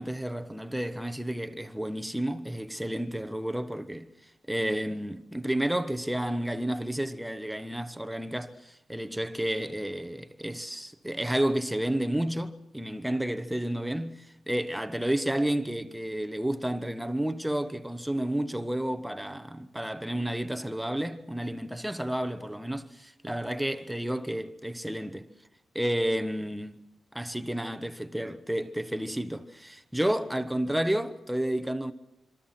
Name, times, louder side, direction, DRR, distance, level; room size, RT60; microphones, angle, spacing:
voice 1, 0.0-4.1 4.5-25.3 25.7-26.8 27.1-31.9, right 1 dB, 5° right, 1.1 m, -31 dB
26.5 x 24.5 x 5.9 m
wide cardioid pair, 155°, 0 cm